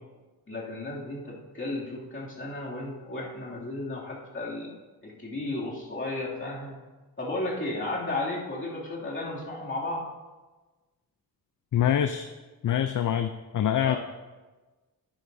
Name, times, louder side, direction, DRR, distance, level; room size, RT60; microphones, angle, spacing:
voice 1, 0.5-4.7 5.0-6.8 7.2-10.0 13.8-14.0, left 2 dB, 30° left, -5 dB, 2.5 m, -34 dB
voice 2, 11.7-12.3 12.6-14.0, left 10 dB, 55° left, 9 dB, 0.5 m, -25 dB
11.5 x 10.0 x 2.7 m, 1.2 s
wide cardioid pair, 105°, 39 cm